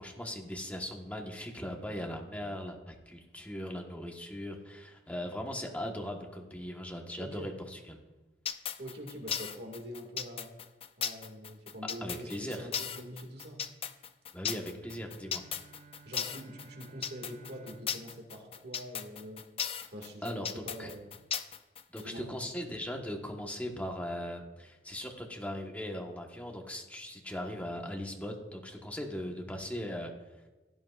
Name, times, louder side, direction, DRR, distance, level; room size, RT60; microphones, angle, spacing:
voice 1, 0.0-8.0 12.0-12.7 14.3-15.4 20.2-20.9 21.9-30.1, equal, 10° left, 1 dB, 1.2 m, -39 dB
voice 2, 7.2-7.5 8.8-10.5 11.0-13.6 16.1-19.4 19.9-21.2 22.0-22.5, equal, 60° right, 2 dB, 2.0 m, -45 dB
sound 1, 8.5-22.0, left 8 dB, 30° left, 0.4 m, -36 dB
Bowed string instrument, 14.8-19.5, right 4 dB, 40° right, 0.7 m, -57 dB
16.0 x 10.5 x 2.4 m, 1.1 s
head